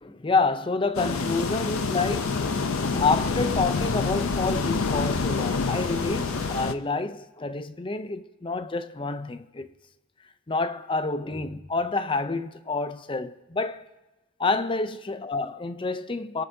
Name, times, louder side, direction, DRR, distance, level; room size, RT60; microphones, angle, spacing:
voice 1, 0.0-2.5 2.9-9.7 10.5-13.9 14.4-16.4, left 3 dB, 25° left, 0.5 m, -28 dB
sound 1, 0.9-6.7, left 4 dB, 85° left, 0.6 m, -27 dB
sound 2, 1.1-6.6, equal, 10° left, 3.3 m, -41 dB
29.5 x 11.0 x 2.7 m
head